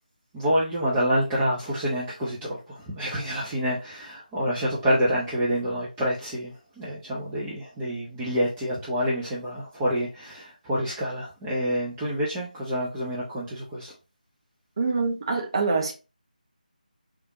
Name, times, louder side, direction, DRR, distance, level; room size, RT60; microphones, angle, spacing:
voice 1, 0.3-13.9, equal, 10° right, 0.7 m, -27 dB
voice 2, 14.8-15.9, right 4 dB, 40° right, 1.0 m, -25 dB
3.5 x 3.4 x 2.7 m
figure-of-eight pair, 160°, 5 cm